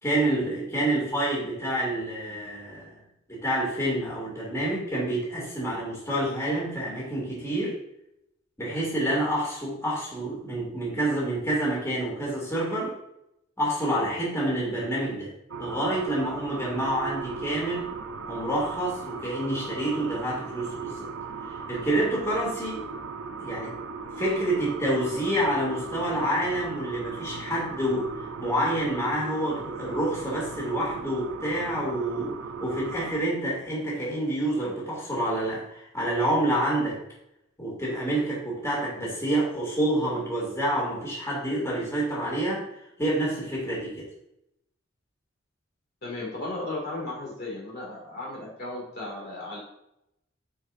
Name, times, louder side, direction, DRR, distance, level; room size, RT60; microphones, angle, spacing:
voice 1, 0.0-3.0 3.3-7.7 8.6-12.9 13.6-15.3 15.6-17.9 18.3-21.0 21.7-22.8 23.4-23.7 24.2-28.1 28.4-37.0 37.6-42.7 43.0-44.1, right 1 dB, 15° left, -5 dB, 2.5 m, -28 dB
sound 1, 15.5-33.2, right 4 dB, 70° right, 0.6 m, -38 dB
voice 2, 46.0-49.6, left 2 dB, 55° left, -4 dB, 2.3 m, -35 dB
11.0 x 4.8 x 2.6 m, 0.80 s
head